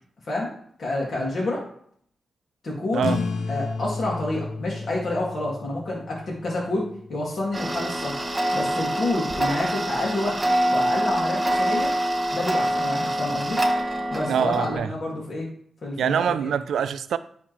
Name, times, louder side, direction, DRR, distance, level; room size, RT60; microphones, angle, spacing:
voice 1, 0.8-1.6 2.6-8.2 8.5-10.4 10.7-11.9 12.3-13.6 14.1-15.5 15.8-16.5, left 2 dB, 65° left, 2.0 m, -28 dB
sound 1, 3.0-8.1, left 3 dB, 80° left, 0.6 m, -33 dB
Tick-tock, 7.5-14.8, right 1 dB, 25° right, 1.3 m, -25 dB
voice 2, 14.3-14.9 16.0-17.2, right 8 dB, 85° right, 0.3 m, -24 dB
9.5 x 3.5 x 3.1 m
cardioid pair, 55°, 0 cm